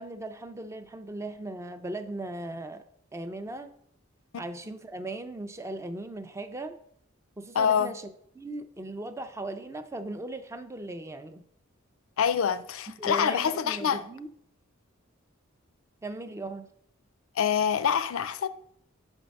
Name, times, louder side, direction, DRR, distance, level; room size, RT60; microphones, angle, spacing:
voice 1, 0.0-2.8 3.1-3.7 4.4-6.8 7.4-8.0 8.4-11.4 13.0-14.3 16.0-16.7, right 2 dB, 15° right, 0.4 m, -38 dB
voice 2, 7.5-7.9 12.2-14.0 17.4-18.5, left 7 dB, 70° left, 0.4 m, -26 dB
6.3 x 4.5 x 5.2 m
head